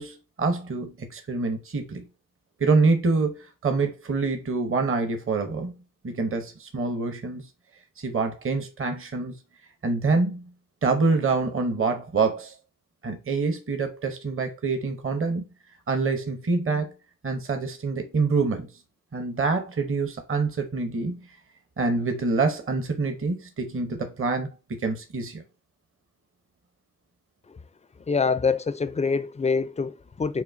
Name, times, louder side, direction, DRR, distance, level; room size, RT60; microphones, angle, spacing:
voice 1, 0.0-2.0 2.6-3.4 3.6-5.7 6.0-7.4 8.0-9.3 9.8-10.4 10.8-12.5 13.0-15.4 15.9-16.9 17.2-18.7 19.1-21.1 21.8-24.5 24.8-25.4, right 4 dB, 40° right, 0.8 m, -26 dB
voice 2, 28.1-30.4, left 5 dB, 20° left, 0.4 m, -25 dB
5.6 x 2.2 x 2.5 m
cardioid pair, 60°, 34 cm